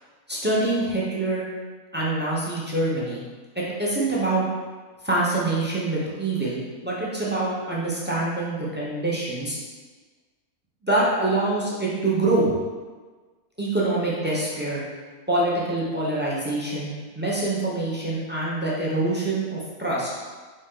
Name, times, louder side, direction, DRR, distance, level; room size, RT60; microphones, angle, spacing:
voice 1, 0.3-1.4 1.9-3.2 3.5-4.5 5.0-9.6 10.8-12.5 13.6-14.8 15.3-20.1, right 2 dB, 10° right, -7 dB, 0.5 m, -25 dB
4.3 x 2.6 x 3.6 m, 1.4 s
omnidirectional pair, 1.4 m